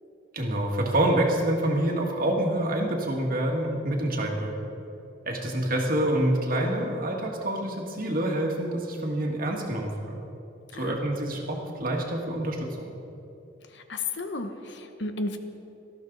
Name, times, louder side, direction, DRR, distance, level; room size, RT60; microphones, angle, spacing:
voice 1, 0.3-4.5 5.3-10.2 10.8-12.9, right 1 dB, 50° right, 0 dB, 2.0 m, -27 dB
voice 2, 13.7-15.4, left 3 dB, 70° left, 7 dB, 1.1 m, -33 dB
18.5 x 13.5 x 4.0 m, 2.8 s
head